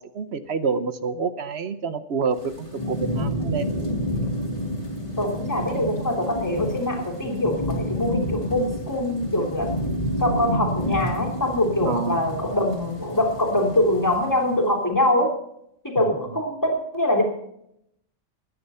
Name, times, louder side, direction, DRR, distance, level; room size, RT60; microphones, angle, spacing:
voice 1, 0.0-3.7 11.8-12.2 16.0-16.1, right 5 dB, 60° right, 12 dB, 1.1 m, -28 dB
Thunderstorm / Rain, 2.3-14.6, equal, 30° left, 2.9 m, -29 dB
voice 2, 5.2-9.7 10.2-15.3 15.8-17.2, left 1 dB, 15° left, 1 dB, 3.2 m, -23 dB
21.0 x 9.8 x 5.6 m, 0.76 s
omnidirectional pair, 1.3 m